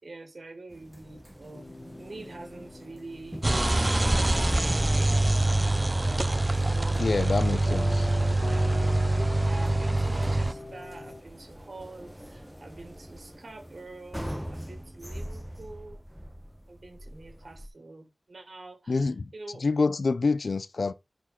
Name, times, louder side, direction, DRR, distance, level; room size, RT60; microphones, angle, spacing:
voice 1, 0.0-3.5 3.8-5.2 5.6-7.4 8.5-9.1 9.4-14.2 14.5-16.0 16.7-19.7, right 2 dB, 65° right, 3.1 m, -46 dB
Big elevator going down, 0.7-17.7, equal, 5° right, 1.2 m, -44 dB
sound 1, 1.5-11.2, left 3 dB, 45° left, 0.7 m, -43 dB
sound 2, 3.4-10.5, right 2 dB, 25° right, 0.7 m, -24 dB
voice 2, 7.0-8.1 18.9-19.3 19.6-20.9, left 4 dB, 80° left, 0.7 m, -27 dB
10.5 x 4.7 x 4.1 m
wide cardioid pair, 80°, 0 cm